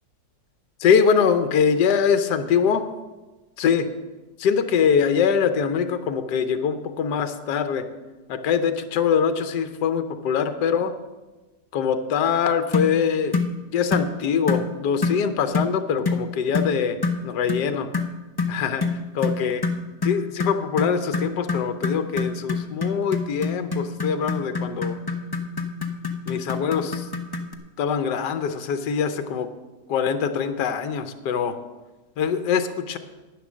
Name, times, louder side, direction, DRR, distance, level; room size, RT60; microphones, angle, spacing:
voice 1, 0.8-2.8 3.6-3.9 4.4-7.8 8.3-10.9 11.7-17.0 17.2-17.9 18.5-19.6 20.0-25.0 26.3-27.1 27.8-29.5 29.9-31.6 32.2-33.0, left 7 dB, 80° left, 9 dB, 1.4 m, -23 dB
sound 1, 12.7-12.9 13.3-13.5 13.9-14.1 14.5-14.7 15.0-15.2 15.5-15.7 16.0-16.2 16.5-16.7 17.0-17.2 17.5-17.7 17.9-27.5, left 4 dB, 40° left, 0.3 m, -26 dB
10.5 x 9.9 x 6.2 m, 1.2 s
omnidirectional pair, 1.8 m